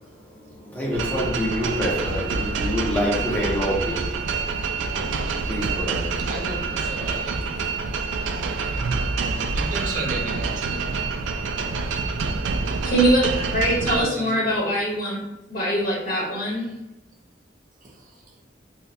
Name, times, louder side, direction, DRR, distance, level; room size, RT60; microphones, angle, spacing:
voice 1, 0.0-4.1 4.9-6.4, equal, 10° left, -5 dB, 0.6 m, -27 dB
sound 1, 0.9-14.0, right 4 dB, 90° right, 0.3 m, -27 dB
voice 2, 4.7-5.5 6.3-7.3 9.5-10.8 13.9-14.4, right 2 dB, 45° right, -1 dB, 0.7 m, -33 dB
voice 3, 12.8-15.2 15.5-16.7, right 1 dB, 50° left, -6 dB, 1.4 m, -23 dB
4.1 x 2.2 x 2.6 m, 0.97 s
head